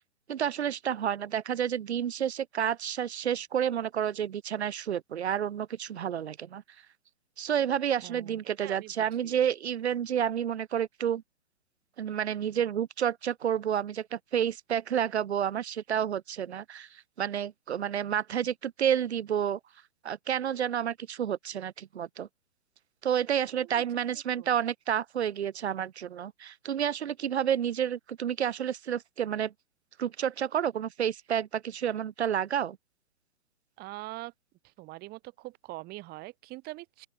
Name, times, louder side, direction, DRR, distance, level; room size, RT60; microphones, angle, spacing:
voice 1, 0.3-6.6 7.4-11.2 12.0-19.6 20.0-22.3 23.0-29.5 30.0-32.8, right 9 dB, 55° right, 4.5 m, -30 dB
voice 2, 8.0-8.9 9.2-9.4 23.6-23.9 24.3-24.5 33.8-34.3 34.8-37.1, right 21 dB, 25° right, 3.7 m, -43 dB
open air
figure-of-eight pair, 130°, 40 cm